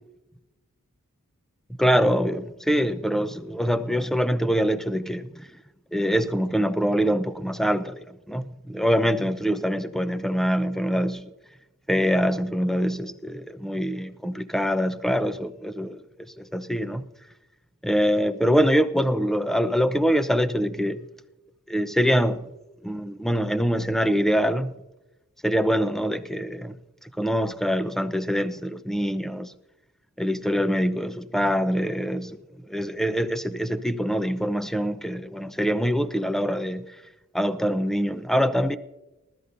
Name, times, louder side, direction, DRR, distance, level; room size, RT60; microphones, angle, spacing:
voice 1, 1.8-5.5 5.9-11.3 11.9-16.0 16.4-17.1 17.8-21.0 21.7-22.5 22.8-24.7 25.4-26.8 27.0-29.5 30.2-32.4 32.6-37.0 37.3-38.8, equal, ahead, 0.7 m, -24 dB
20.0 x 13.0 x 2.7 m
wide cardioid pair, 45°, 33 cm